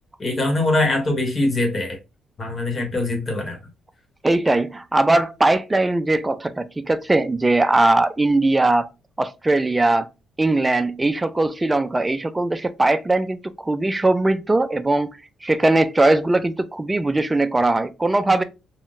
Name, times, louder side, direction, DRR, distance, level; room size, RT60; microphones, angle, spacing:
voice 1, 0.2-2.0 2.4-3.6, left 2 dB, 30° left, 1.1 m, -22 dB
voice 2, 4.2-8.9 9.2-10.1 10.4-15.1 15.4-18.4, right 2 dB, 15° right, 0.4 m, -20 dB
3.6 x 2.1 x 2.4 m
cardioid pair, 90°, 0 cm